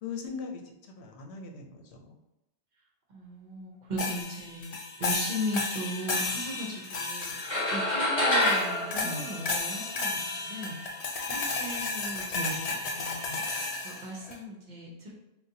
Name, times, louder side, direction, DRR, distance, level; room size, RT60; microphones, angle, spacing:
voice 1, 0.0-2.1 9.0-9.3 12.3-12.6, left 3 dB, 75° left, 2 dB, 0.8 m, -39 dB
voice 2, 3.1-15.1, equal, 50° right, -3 dB, 0.8 m, -38 dB
sound 1, 4.0-8.0 8.4-14.4, left 3 dB, 55° left, 0.4 m, -33 dB
sound 2, 7.4-10.1, left 1 dB, 30° left, 0.8 m, -27 dB
4.0 x 2.2 x 2.6 m, 0.95 s
omnidirectional pair, 1.1 m